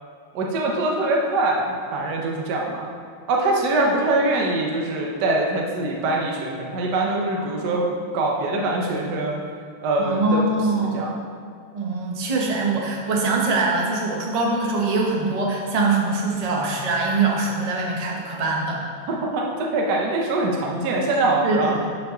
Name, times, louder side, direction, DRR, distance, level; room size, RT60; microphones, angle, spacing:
voice 1, 0.3-2.9 3.3-7.9 8.1-9.4 9.8-10.4 10.8-11.1 19.1-21.8, right 2 dB, 60° right, -1 dB, 1.4 m, -23 dB
voice 2, 7.3-7.7 10.0-11.0 11.7-18.8 21.4-21.9, right 3 dB, 30° right, -1 dB, 0.8 m, -23 dB
11.5 x 5.7 x 3.8 m, 2.2 s
omnidirectional pair, 2.2 m